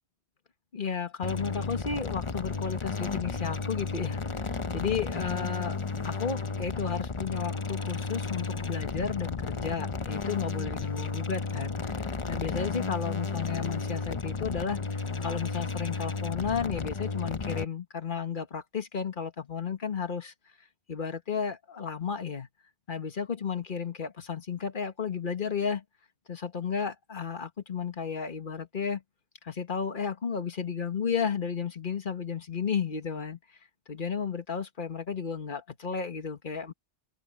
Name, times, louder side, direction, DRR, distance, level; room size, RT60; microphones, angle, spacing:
voice 1, 0.7-14.8 15.2-20.3 20.9-22.5 22.9-25.8 26.3-29.0 29.4-33.4 33.9-36.7, left 6 dB, 45° left, 1.7 m, -33 dB
sound 1, 1.2-17.7, left 4 dB, 30° left, 0.8 m, -33 dB
omnidirectional pair, 1.2 m